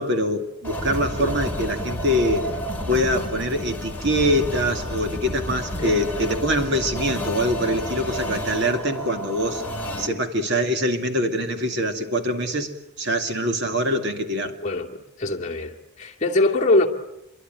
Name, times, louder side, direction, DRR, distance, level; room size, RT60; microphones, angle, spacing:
voice 1, 0.0-2.5 2.9-9.6 10.0-12.7 13.0-14.6, equal, 50° right, 2.4 m, -24 dB
sound 1, 0.6-10.1, equal, 5° left, 3.4 m, -30 dB
voice 2, 14.4-16.9, left 2 dB, 35° left, 2.5 m, -23 dB
27.5 x 24.0 x 9.1 m
head